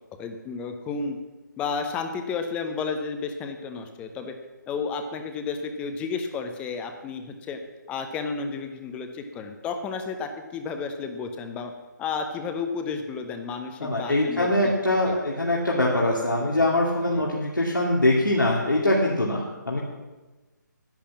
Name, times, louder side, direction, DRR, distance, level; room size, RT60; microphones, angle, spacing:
voice 1, 0.2-1.2 1.6-4.3 4.7-7.6 7.9-11.7 12.0-14.7 15.0-15.2 17.1-17.2, left 5 dB, 10° left, 6 dB, 0.8 m, -32 dB
voice 2, 13.8-19.8, left 1 dB, 85° left, -3 dB, 2.4 m, -23 dB
10.5 x 10.0 x 7.3 m, 1.2 s
figure-of-eight pair, 145°, 10 cm